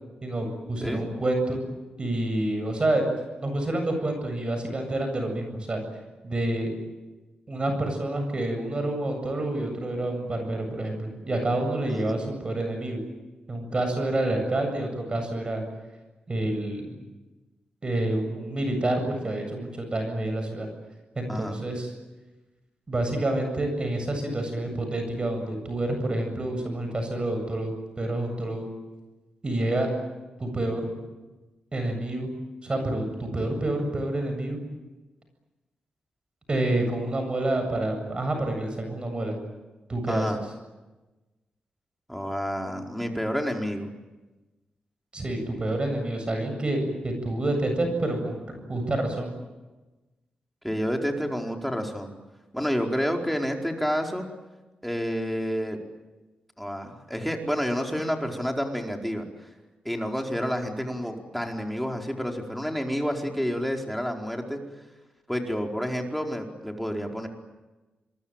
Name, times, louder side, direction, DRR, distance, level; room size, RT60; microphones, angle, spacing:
voice 1, 0.2-1.7 2.0-3.1 3.4-5.8 6.2-6.7 7.5-13.0 13.5-15.6 16.3-17.0 17.8-20.7 21.2-21.9 22.9-28.7 29.4-29.9 30.4-30.9 31.7-32.3 32.6-34.6 36.5-39.4 39.9-40.3 45.1-49.3, right 1 dB, 35° right, 5 dB, 7.9 m, -28 dB
voice 2, 40.1-40.4 42.1-43.9 50.6-52.1 52.5-54.3 54.8-55.8 56.6-59.2 59.8-64.6 65.3-67.3, equal, ahead, 2 dB, 4.7 m, -29 dB
27.0 x 23.5 x 9.1 m, 1.1 s
cardioid pair, 80°, 3 cm